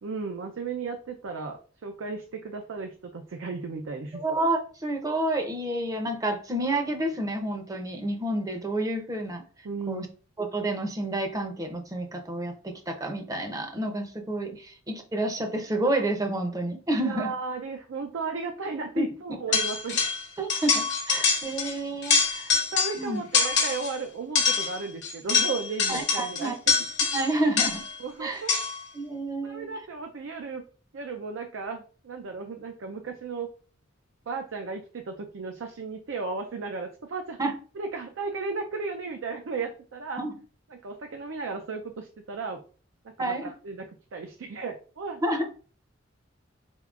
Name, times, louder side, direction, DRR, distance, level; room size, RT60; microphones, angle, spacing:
voice 1, 0.0-4.2 9.6-10.1 17.0-20.0 22.7-26.8 28.0-28.6 29.4-30.6 30.9-33.5 34.3-37.4 37.7-40.3 40.7-42.6 43.0-45.2, right 4 dB, 80° right, 4 dB, 0.5 m, -35 dB
voice 2, 4.1-9.4 9.9-10.1 10.4-17.3 19.0-19.1 19.5-19.6 20.4-22.5 22.9-23.2 25.9-26.5 27.1-27.8 28.2-28.4 28.9-29.7 37.4-37.5 40.2-40.3 43.2-43.5 45.2-45.4, right 1 dB, 20° right, 5 dB, 0.6 m, -29 dB
sound 1, 19.5-20.2 20.5-21.7 22.0-23.0 23.3-23.9 24.4-28.0 28.5-28.9, left 5 dB, 65° left, 1.0 m, -25 dB
4.4 x 3.6 x 2.4 m, 0.40 s
head